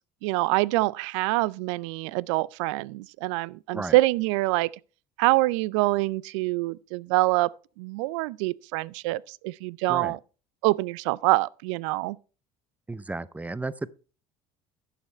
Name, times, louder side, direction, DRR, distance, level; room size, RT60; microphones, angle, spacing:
voice 1, 0.2-4.7 5.2-7.5 7.8-10.2 10.6-12.2, right 20 dB, 85° right, 0.4 m, -25 dB
voice 2, 12.9-13.9, right 3 dB, 10° right, 0.5 m, -33 dB
11.0 x 6.6 x 4.4 m
supercardioid pair, 90°, 15 cm